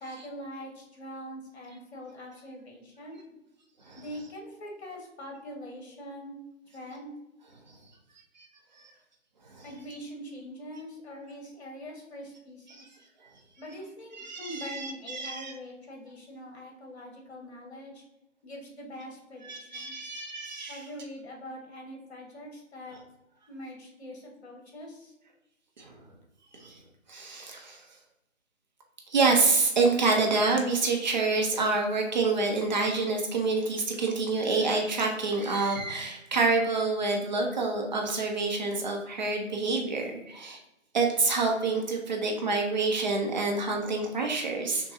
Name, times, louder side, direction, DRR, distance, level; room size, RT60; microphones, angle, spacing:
voice 1, 0.0-3.4 3.9-6.4 6.7-7.1 9.6-13.0 13.6-18.0 18.4-20.1 20.7-23.0 23.5-25.1, equal, 55° left, 1 dB, 1.5 m, -43 dB
voice 2, 14.1-15.5 19.4-20.8 25.8-26.0 26.5-26.8 27.1-27.8 29.1-40.6 40.9-44.9, right 3 dB, 35° right, 1 dB, 0.7 m, -27 dB
6.2 x 2.3 x 2.7 m, 0.96 s
figure-of-eight pair, 150°, 40 cm